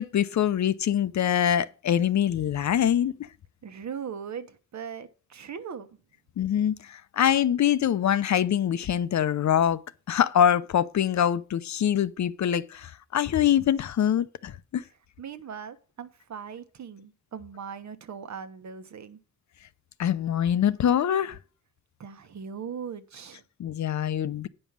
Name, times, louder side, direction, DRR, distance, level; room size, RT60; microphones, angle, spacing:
voice 1, 0.0-3.2 6.4-9.8 10.1-14.8 20.0-21.4 23.6-24.5, left 9 dB, 65° left, 0.7 m, -24 dB
voice 2, 3.6-5.9 15.2-19.2 22.0-23.4, right 7 dB, 60° right, 1.1 m, -39 dB
9.7 x 5.4 x 7.3 m
wide cardioid pair, 135°, 31 cm